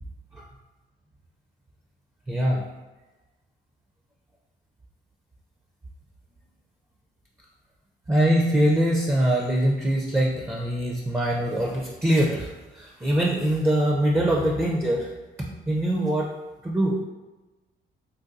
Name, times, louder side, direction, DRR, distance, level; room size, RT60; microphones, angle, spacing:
voice 1, 2.3-2.6 8.1-15.1 15.7-16.3 16.6-17.0, right 1 dB, 10° right, -2 dB, 0.4 m, -23 dB
3.9 x 2.2 x 2.5 m, 1.2 s
cardioid pair, 90°, 20 cm